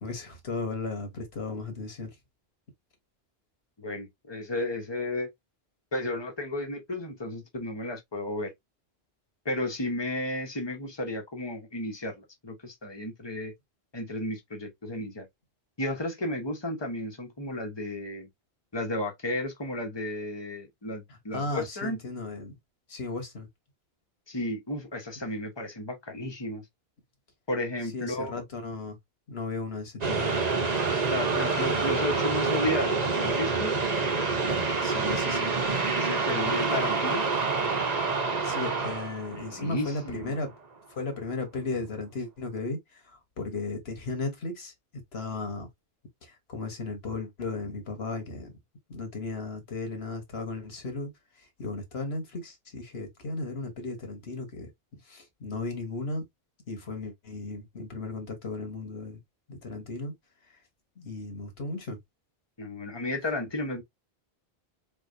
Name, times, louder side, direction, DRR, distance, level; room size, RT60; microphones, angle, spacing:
voice 1, 0.0-2.1 21.3-22.6 22.9-23.5 27.9-29.0 29.3-30.3 34.8-35.5 38.4-40.5 40.9-42.8 43.4-44.7 45.1-45.7 46.5-48.5 48.9-51.1 51.6-54.7 55.1-56.2 56.7-59.2 59.5-60.1 61.0-62.0, left 3 dB, 80° left, 1.7 m, -35 dB
voice 2, 3.8-5.3 5.9-8.5 9.4-13.5 13.9-15.3 15.8-18.3 18.7-22.0 24.3-26.6 27.5-28.4 30.9-33.7 35.9-37.3 39.3-40.4 62.6-63.8, left 1 dB, 25° left, 1.1 m, -33 dB
sound 1, 30.0-40.3, right 4 dB, 45° right, 1.0 m, -27 dB
4.2 x 3.5 x 2.6 m
omnidirectional pair, 1.0 m